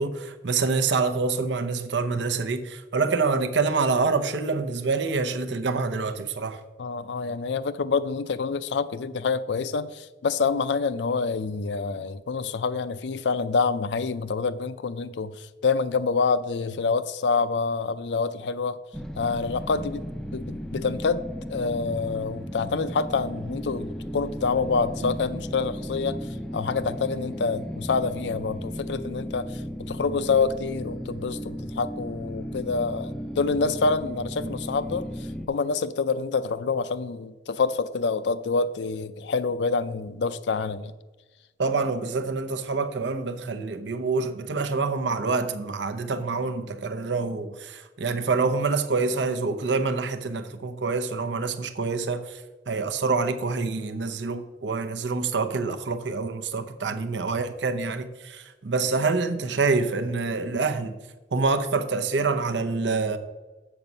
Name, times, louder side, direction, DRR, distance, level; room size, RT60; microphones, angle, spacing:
voice 1, 0.0-6.6 25.0-25.2 34.4-34.5 41.6-61.0 61.3-63.2, right 4 dB, 90° right, 0.7 m, -26 dB
voice 2, 6.8-18.8 19.2-20.1 20.3-21.2 21.5-40.9 56.9-57.0, left 4 dB, 80° left, 0.4 m, -27 dB
sound 1, 18.9-35.5, equal, 5° left, 0.4 m, -35 dB
7.2 x 6.0 x 5.3 m
head